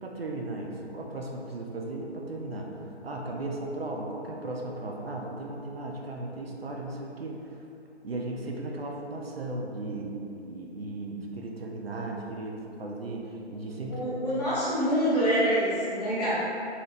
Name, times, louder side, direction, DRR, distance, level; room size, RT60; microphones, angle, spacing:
voice 1, 0.0-7.6 8.0-14.1, right 2 dB, 65° right, -1 dB, 0.5 m, -36 dB
voice 2, 13.9-16.4, equal, 35° left, -10 dB, 0.9 m, -26 dB
3.0 x 2.9 x 2.5 m, 2.7 s
figure-of-eight pair, 145°, 34 cm